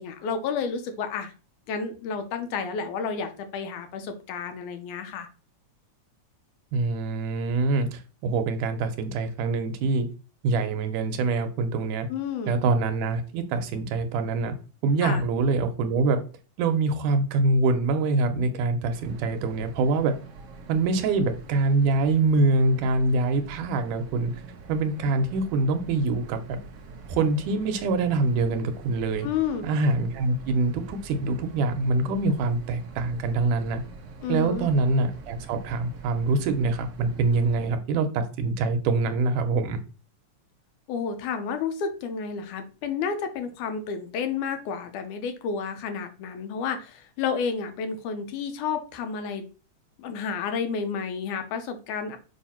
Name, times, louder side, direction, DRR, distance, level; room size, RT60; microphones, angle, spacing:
voice 1, 0.0-1.3 1.7-5.3 12.1-12.6 15.0-15.2 29.2-29.7 34.2-34.7 40.9-49.4 50.0-52.2, left 6 dB, 80° left, 7 dB, 2.4 m, -31 dB
voice 2, 6.7-10.1 10.4-12.1 12.5-14.5 14.8-16.2 16.6-20.1 20.7-24.3 24.7-26.6 27.1-29.3 29.6-33.8 34.3-39.8, right 3 dB, 85° right, 7 dB, 2.4 m, -24 dB
sound 1, 18.9-37.7, right 4 dB, 60° right, 1.7 m, -45 dB
7.1 x 2.8 x 5.7 m, 0.34 s
omnidirectional pair, 3.6 m